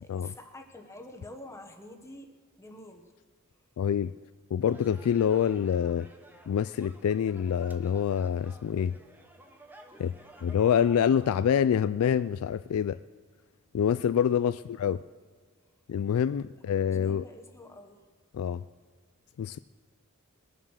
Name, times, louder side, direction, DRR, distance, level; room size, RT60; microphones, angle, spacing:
voice 1, 0.0-3.1 9.9-10.2 14.9-15.1 16.5-18.1, left 1 dB, 15° left, 1.2 m, -48 dB
voice 2, 3.8-4.1 4.5-6.1 6.5-8.9 10.0-10.1 10.4-13.0 13.7-15.0 15.9-17.2 18.3-18.6 19.4-19.6, left 8 dB, 70° left, 0.3 m, -26 dB
sound 1, 4.6-11.3, right 1 dB, 10° right, 1.0 m, -53 dB
21.0 x 7.3 x 6.4 m
head